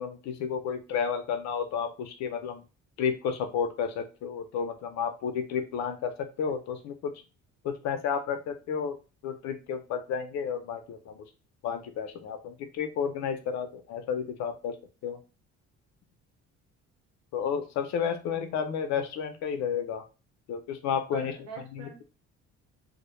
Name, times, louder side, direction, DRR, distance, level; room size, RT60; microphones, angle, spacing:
voice 1, 0.0-2.6 3.0-7.1 7.6-9.0 9.2-11.2 11.6-14.7 15.0-15.2 17.3-20.0 20.5-21.3 21.7-22.0, left 7 dB, 70° left, 7 dB, 0.5 m, -31 dB
voice 2, 18.0-18.4 21.1-22.0, right 5 dB, 65° right, 0 dB, 1.0 m, -44 dB
2.1 x 2.0 x 3.0 m, 0.31 s
cardioid pair, 175°, 29 cm